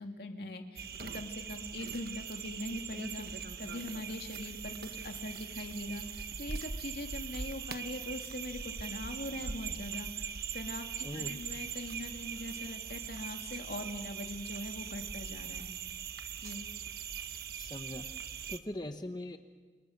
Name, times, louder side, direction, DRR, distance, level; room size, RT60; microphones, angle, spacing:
voice 1, 0.0-10.3 10.5-15.7 16.4-16.7, left 1 dB, 60° left, 3 dB, 2.7 m, -42 dB
sound 1, 0.8-18.6, right 7 dB, 55° right, 1.2 m, -41 dB
voice 2, 11.0-11.4 17.6-18.1 18.5-19.4, left 1 dB, 25° left, 7 dB, 1.0 m, -40 dB
28.5 x 28.5 x 6.7 m, 1.5 s
head